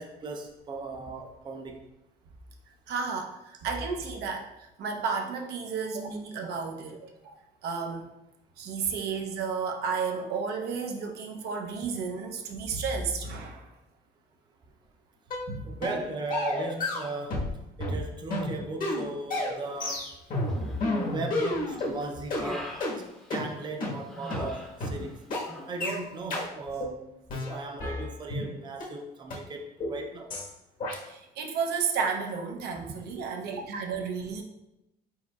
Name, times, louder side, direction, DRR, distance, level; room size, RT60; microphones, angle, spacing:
voice 1, 0.0-1.8 15.6-17.5 17.8-20.2 20.8-23.0 23.3-25.3 25.7-27.1 27.3-30.4 32.8-32.9, right 3 dB, 25° right, 3 dB, 0.5 m, -37 dB
voice 2, 2.9-7.1 7.6-8.1 8.6-13.7 15.5-15.8 24.9-25.1 31.1-34.4, right 5 dB, 75° right, 2 dB, 0.7 m, -32 dB
sound 1, 15.3-15.5 15.8-16.0 16.3-17.5 17.8-21.9 22.3-22.4 22.8-22.9 23.3-23.4 23.8-23.9 24.3-24.4 24.8-24.9 25.3-25.4 25.8-26.0 26.3-26.5 26.8-27.0 27.3-28.5 28.8-28.9 29.3-29.4 29.8-30.0 30.3-30.5 30.8-31.0, left 2 dB, 55° left, 1.4 m, -31 dB
Human voice, 20.5-21.1 21.5-23.7 24.1-25.2 25.4-25.7, equal, 5° left, 0.8 m, -40 dB
4.6 x 4.2 x 2.3 m, 0.93 s
cardioid pair, 110°, 17 cm